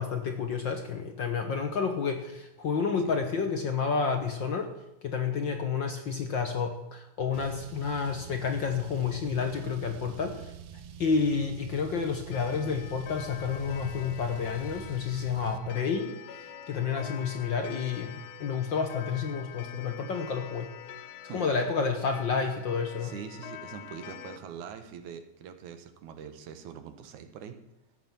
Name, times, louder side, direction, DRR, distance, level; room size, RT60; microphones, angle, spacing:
voice 1, 0.0-4.7 5.0-10.5 11.0-20.7 21.3-23.1, left 5 dB, 55° left, 5 dB, 1.4 m, -30 dB
Car, 7.3-15.6, right 6 dB, 65° right, 1.7 m, -45 dB
Clock, 12.3-24.4, left 9 dB, 70° left, 1.9 m, -45 dB
voice 2, 21.3-21.7 23.0-27.5, right 7 dB, 90° right, 8 dB, 2.7 m, -43 dB
13.5 x 8.9 x 7.3 m, 0.92 s
omnidirectional pair, 3.3 m